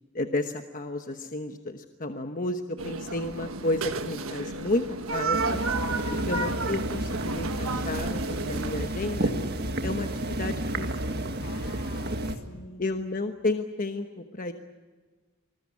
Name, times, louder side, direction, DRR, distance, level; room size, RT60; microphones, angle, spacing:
voice 1, 0.1-4.9 5.1-5.6 6.3-9.3 9.8-11.2 12.8-14.5, left 2 dB, 40° left, 6 dB, 1.1 m, -32 dB
sound 1, 2.8-8.9, right 3 dB, 70° right, 1.5 m, -32 dB
sound 2, 5.3-12.4, right 1 dB, 50° right, 1.8 m, -31 dB
voice 2, 5.9-6.3 11.4-12.9, left 3 dB, 70° left, 4 dB, 2.9 m, -45 dB
26.0 x 21.0 x 8.5 m, 1.3 s
head